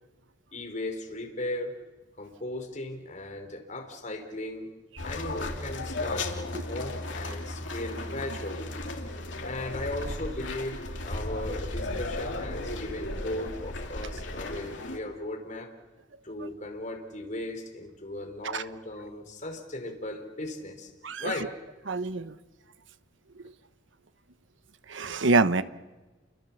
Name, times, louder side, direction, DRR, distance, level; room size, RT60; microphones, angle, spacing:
voice 1, 0.5-1.8 2.2-4.7 5.0-8.7 9.4-15.7 16.2-20.9 21.2-21.6, left 1 dB, 40° left, 3 dB, 3.9 m, -37 dB
sound 1, 5.0-15.0, left 2 dB, 75° left, 2.8 m, -35 dB
voice 2, 21.9-22.3 24.9-25.6, right 3 dB, 80° right, 13 dB, 1.1 m, -25 dB
29.5 x 25.0 x 7.2 m, 1.1 s
head